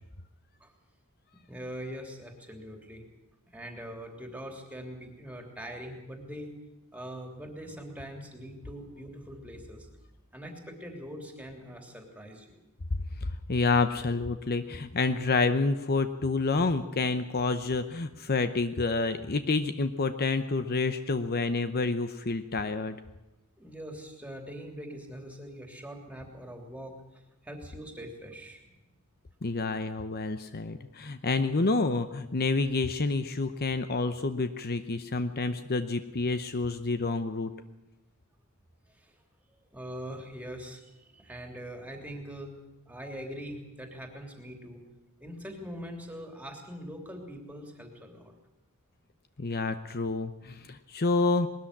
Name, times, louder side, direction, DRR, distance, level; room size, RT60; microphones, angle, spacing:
voice 1, 1.5-3.0 3.5-6.5 6.9-9.9 10.3-12.6 23.6-28.7 39.0-39.1 39.7-42.5 42.9-44.8 45.2-48.3, equal, 5° right, 3 dB, 3.1 m, -42 dB
voice 2, 13.2-23.0 29.4-37.5 49.4-51.5, left 3 dB, 45° left, 10 dB, 0.8 m, -28 dB
20.0 x 13.5 x 10.0 m, 0.98 s
head